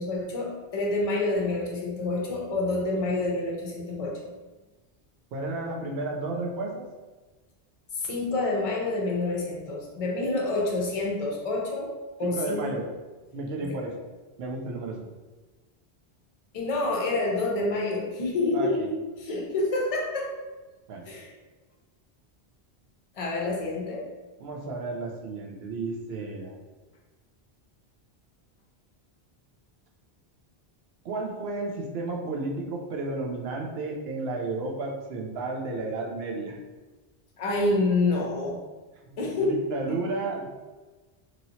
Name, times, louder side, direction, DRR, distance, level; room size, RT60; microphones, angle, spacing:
voice 1, 0.0-4.3 8.0-11.9 12.2-12.8 16.5-20.3 21.0-21.3 23.2-24.0 37.4-38.6 39.2-39.6 39.9-40.0, left 2 dB, 40° left, -1 dB, 0.6 m, -28 dB
voice 2, 5.3-6.9 12.2-12.9 13.3-14.0 14.4-15.1 18.5-18.9 20.9-21.1 24.4-26.6 31.0-36.6 39.4-40.5, right 3 dB, 70° right, 0 dB, 0.8 m, -32 dB
3.0 x 2.8 x 2.7 m, 1.2 s
omnidirectional pair, 1.1 m